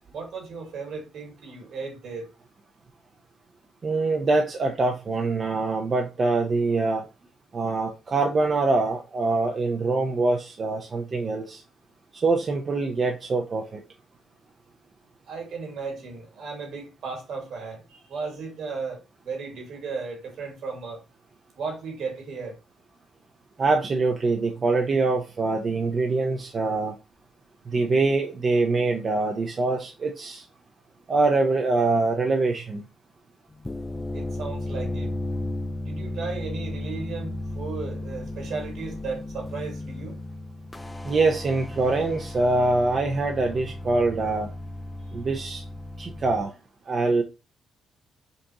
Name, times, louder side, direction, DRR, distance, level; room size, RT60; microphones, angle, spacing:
voice 1, 0.1-2.3 15.3-21.0 21.6-22.6 34.1-35.1 35.8-40.2, right 4 dB, 70° right, 1.8 m, -35 dB
voice 2, 3.8-7.0 7.5-11.6 12.2-13.8 23.6-26.9 27.7-30.4 31.1-32.8 41.0-44.5 45.1-45.6 46.0-46.5 46.9-47.2, right 3 dB, 40° right, 0.6 m, -24 dB
sound 1, 33.5-46.4, left 1 dB, 15° left, 0.4 m, -34 dB
5.3 x 2.5 x 2.8 m
cardioid pair, 90°, 0 cm